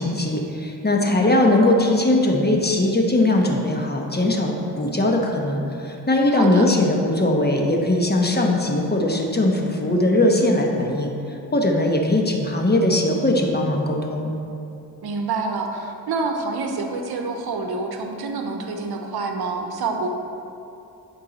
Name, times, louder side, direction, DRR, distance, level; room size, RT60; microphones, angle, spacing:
voice 1, 0.0-11.1 11.5-14.3, left 1 dB, 25° left, 1 dB, 1.2 m, -20 dB
voice 2, 1.0-1.3 6.3-6.7 15.0-20.1, right 4 dB, 70° right, 4 dB, 0.9 m, -27 dB
11.0 x 4.6 x 4.2 m, 2.8 s
cardioid pair, 60°, 40 cm